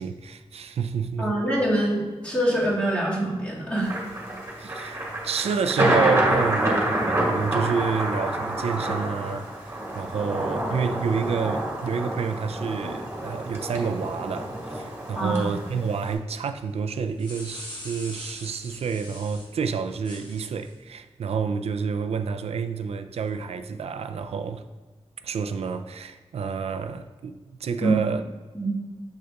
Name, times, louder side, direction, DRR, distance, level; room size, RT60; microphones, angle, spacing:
voice 1, 0.0-1.4 4.6-24.6 25.2-28.2, right 6 dB, 85° right, 0.4 m, -29 dB
voice 2, 1.2-3.9 15.2-15.5 27.8-28.0 28.5-28.8, right 1 dB, 10° left, 1.8 m, -24 dB
Thunder, 3.9-16.1, right 1 dB, 25° right, 1.7 m, -27 dB
sound 1, 16.9-19.5 20.0-20.7, left 1 dB, 45° left, 1.2 m, -41 dB
6.6 x 6.4 x 2.3 m
wide cardioid pair, 135°, 10 cm